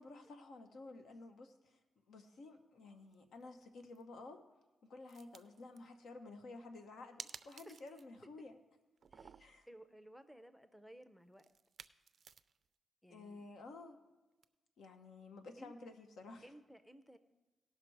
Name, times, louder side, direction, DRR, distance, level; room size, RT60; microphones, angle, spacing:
voice 1, 0.0-1.8 2.1-4.4 4.8-8.6 9.4-9.7 13.1-14.0 14.8-16.5, left 3 dB, 85° left, 6 dB, 1.0 m, -53 dB
sound 1, 3.1-3.4 3.8-4.0 5.1-5.8 7.2-8.2 8.5-8.6 9.0-9.6 11.4-12.7 14.4-14.5, right 6 dB, 60° right, 0.3 m, -54 dB
voice 2, 9.1-11.4 13.0-13.5 15.6-15.9 16.4-17.2, right 1 dB, 5° left, 11 dB, 0.5 m, -57 dB
17.5 x 5.9 x 4.6 m, 1.2 s
cardioid pair, 100°, 0 cm